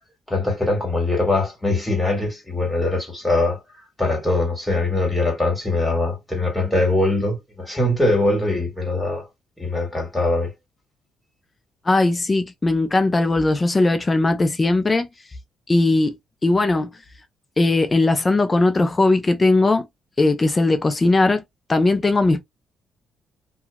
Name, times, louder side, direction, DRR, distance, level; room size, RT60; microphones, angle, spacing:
voice 1, 0.3-3.6 4.0-9.3 9.6-10.5, left 2 dB, 5° left, 1.7 m, -22 dB
voice 2, 11.9-15.1 15.7-16.2 16.4-16.9 17.6-19.9 20.2-21.4 21.7-22.4, left 2 dB, 25° left, 0.5 m, -18 dB
2.8 x 2.3 x 2.3 m
cardioid pair, 90°, 0 cm